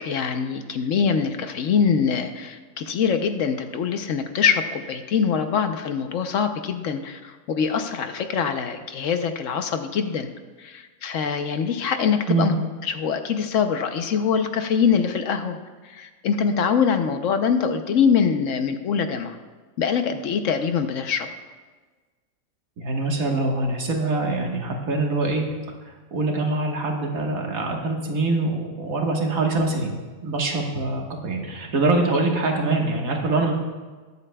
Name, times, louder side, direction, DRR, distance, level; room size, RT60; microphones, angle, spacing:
voice 1, 0.0-10.3 10.6-12.5 12.8-15.6 15.8-19.4 19.8-21.3, left 6 dB, 65° left, 7 dB, 1.0 m, -23 dB
voice 2, 22.8-25.4 25.9-30.0 30.2-33.5, right 2 dB, 75° right, 1 dB, 1.9 m, -24 dB
21.0 x 8.1 x 2.2 m, 1.4 s
omnidirectional pair, 1.5 m